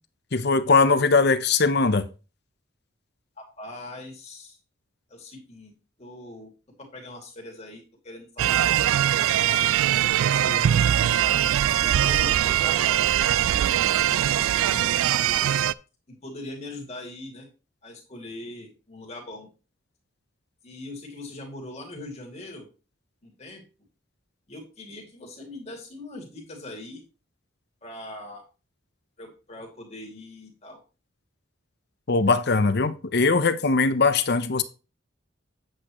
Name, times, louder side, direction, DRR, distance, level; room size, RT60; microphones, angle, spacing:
voice 1, 0.3-2.0 32.1-34.6, left 4 dB, 55° left, 0.7 m, -20 dB
voice 2, 3.4-4.6 5.1-5.7 6.0-6.5 6.8-9.2 9.9-13.3 14.0-14.9 16.1-17.5 17.8-19.5 20.6-22.7 23.2-23.6 24.5-27.0 27.8-28.5 29.2-30.8, left 2 dB, 35° left, 2.4 m, -41 dB
sound 1, 8.4-15.7, right 11 dB, 85° right, 0.3 m, -22 dB
8.6 x 7.9 x 3.0 m
head